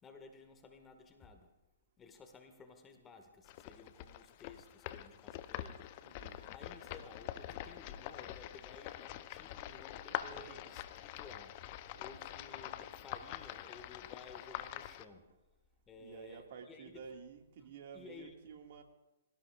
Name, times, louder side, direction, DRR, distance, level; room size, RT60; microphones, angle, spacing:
voice 1, 0.0-1.5 2.0-15.3 15.9-17.0 17.9-18.4, left 4 dB, 20° left, 6 dB, 1.8 m, -55 dB
sound 1, 3.4-15.0, left 13 dB, 40° left, 0.7 m, -45 dB
voice 2, 6.0-6.5 10.0-11.1 11.9-12.1 16.0-18.8, right 6 dB, 55° right, 3 dB, 2.0 m, -53 dB
22.5 x 17.5 x 2.5 m, 1.0 s
figure-of-eight pair, 120°, 0 cm